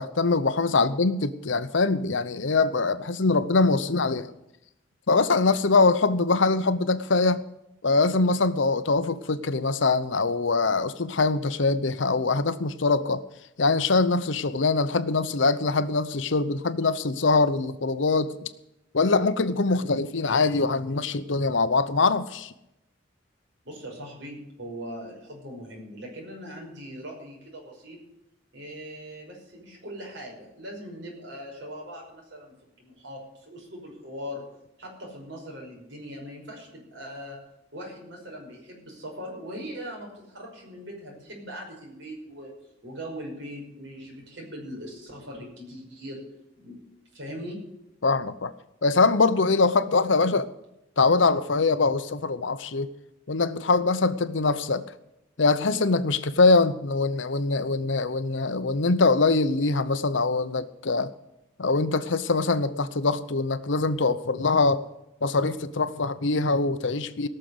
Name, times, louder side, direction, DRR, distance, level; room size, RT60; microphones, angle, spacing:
voice 1, 0.0-4.3 5.1-7.4 7.8-13.2 13.6-18.3 18.9-22.5 48.0-48.5 48.8-50.5 51.0-52.9 53.3-54.8 55.4-61.1 61.6-64.8 65.2-67.3, left 3 dB, 70° left, 0.8 m, -23 dB
voice 2, 23.6-28.0 28.5-34.4 34.8-37.4 37.7-42.5 42.8-46.2 46.6-46.8 47.1-47.6, equal, 65° right, 5.4 m, -40 dB
18.0 x 6.7 x 7.9 m
head